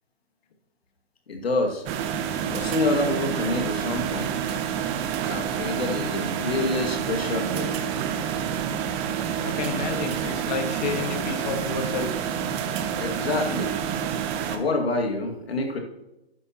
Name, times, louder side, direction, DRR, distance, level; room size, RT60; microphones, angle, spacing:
voice 1, 1.3-1.8 2.5-4.3 5.3-7.8 12.9-13.7 14.5-15.8, left 2 dB, 75° left, 3 dB, 2.3 m, -27 dB
sound 1, 1.9-14.6, right 8 dB, 20° right, 0.7 m, -28 dB
voice 2, 9.4-12.1, left 6 dB, 45° left, 6 dB, 1.7 m, -30 dB
11.5 x 9.8 x 3.0 m, 0.94 s
hypercardioid pair, 140°, 31 cm